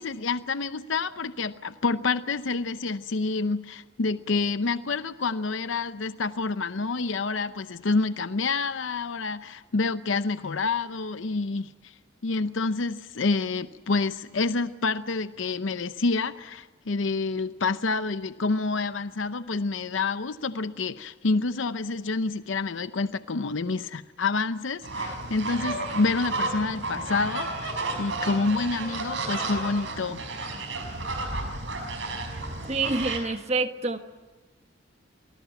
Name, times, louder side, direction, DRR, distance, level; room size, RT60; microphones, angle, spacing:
voice 1, 0.0-11.9 12.2-30.3, left 3 dB, 75° left, 12 dB, 0.7 m, -28 dB
sound 1, 24.8-33.2, right 2 dB, 70° right, 5.1 m, -32 dB
voice 2, 32.7-34.0, right 3 dB, 35° right, 8 dB, 1.4 m, -27 dB
26.0 x 20.0 x 9.1 m, 1.2 s
head